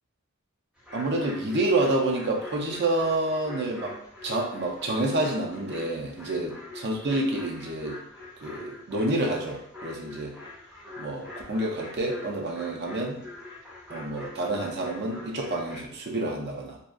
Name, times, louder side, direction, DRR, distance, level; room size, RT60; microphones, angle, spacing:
sound 1, 0.8-15.8, left 2 dB, 5° right, 0.6 m, -44 dB
voice 1, 0.9-8.0 8.4-10.3 11.0-13.2 13.9-16.8, right 2 dB, 50° right, 0 dB, 0.5 m, -28 dB
2.7 x 2.3 x 2.5 m, 0.68 s
head